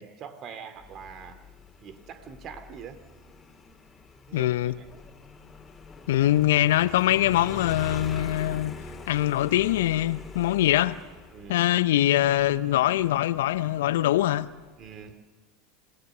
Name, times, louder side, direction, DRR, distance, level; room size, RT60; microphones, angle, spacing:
voice 1, 0.0-1.4 1.8-3.0 4.3-4.9 11.3-11.7 14.8-15.2, right 7 dB, 45° right, 2.4 m, -43 dB
Motorcycle, 0.8-15.1, left 3 dB, 20° left, 3.3 m, -44 dB
voice 2, 4.3-4.8 6.1-8.8 9.1-11.0 11.5-14.5, left 14 dB, 70° left, 0.7 m, -23 dB
27.0 x 17.5 x 6.8 m
hypercardioid pair, 80°, 0 cm